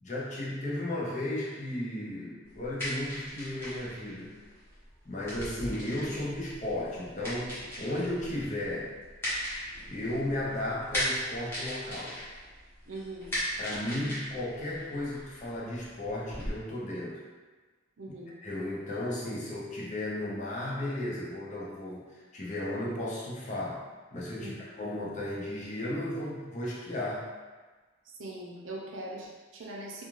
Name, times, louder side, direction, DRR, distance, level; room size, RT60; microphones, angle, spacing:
voice 1, 0.0-4.4 5.0-8.9 9.9-12.2 13.6-17.2 18.4-23.8 24.1-27.3, left 1 dB, 40° left, -5 dB, 0.6 m, -34 dB
sound 1, 2.4-16.5, equal, 10° left, 0.9 m, -38 dB
voice 2, 12.9-13.3 18.0-18.3 24.4-24.6 28.0-30.1, right 1 dB, 75° right, -2 dB, 0.6 m, -41 dB
2.4 x 2.4 x 3.0 m, 1.3 s
head